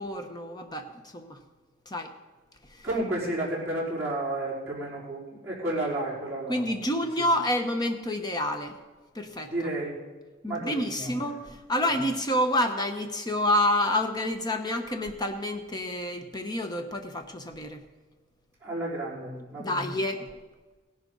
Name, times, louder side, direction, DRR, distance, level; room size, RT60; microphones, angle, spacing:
voice 1, 0.0-1.4 1.9-2.1 6.5-8.7 9.1-9.5 10.4-17.8 19.2-20.3, left 1 dB, 20° left, 5 dB, 1.1 m, -28 dB
voice 2, 2.8-6.7 9.5-10.0 10.5-11.1 18.6-19.8, right 1 dB, 15° right, -9 dB, 4.9 m, -32 dB
17.0 x 11.0 x 4.0 m, 1.3 s
head